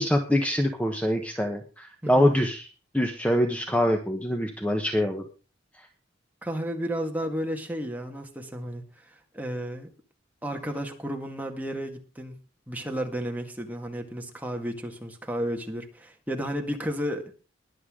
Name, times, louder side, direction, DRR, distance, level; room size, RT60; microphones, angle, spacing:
voice 1, 0.0-2.7 2.9-5.2, equal, 5° left, 4 dB, 1.1 m, -24 dB
voice 2, 2.0-2.3 6.4-9.9 10.4-12.4 12.7-17.3, equal, 10° right, 3 dB, 1.8 m, -33 dB
21.0 x 8.2 x 3.8 m, 0.34 s
head